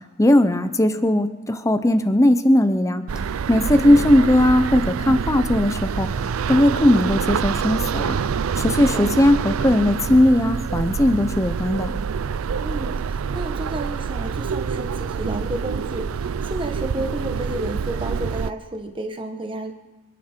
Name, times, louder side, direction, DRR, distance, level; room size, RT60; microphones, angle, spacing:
voice 1, 0.2-3.0 3.5-8.2 8.6-12.0, left 1 dB, 15° left, 10 dB, 0.7 m, -18 dB
sound 1, 3.1-18.5, right 6 dB, 85° right, 0.4 m, -26 dB
voice 2, 3.7-4.1 8.9-9.1 12.6-19.7, right 1 dB, 25° right, 4 dB, 1.4 m, -31 dB
27.0 x 11.0 x 4.5 m, 1.1 s
head